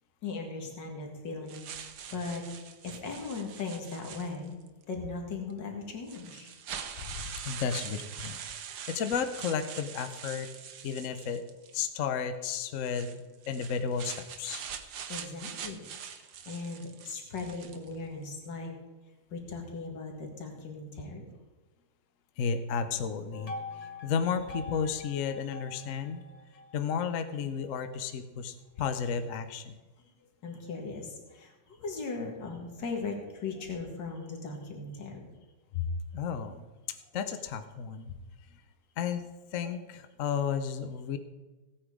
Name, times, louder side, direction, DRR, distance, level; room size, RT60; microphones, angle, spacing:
voice 1, 0.2-2.5 2.8-4.6 4.9-6.5 15.1-15.8 16.1-18.7 19.3-21.3 30.4-35.3, left 4 dB, 75° left, 2 dB, 2.5 m, -38 dB
sound 1, 1.5-4.7 5.5-5.6 6.1-11.8 12.8-18.0, right 8 dB, 65° right, 1.4 m, -43 dB
voice 2, 7.0-8.4 8.9-10.5 10.8-11.4 11.7-14.6 22.4-26.2 26.7-29.8 35.7-36.6 37.1-38.1 39.0-39.2 39.5-41.2, left 6 dB, 55° left, 9 dB, 1.0 m, -33 dB
sound 2, 23.3-27.8, left 3 dB, 30° left, 0.8 m, -44 dB
16.5 x 8.9 x 4.8 m, 1.2 s
omnidirectional pair, 2.0 m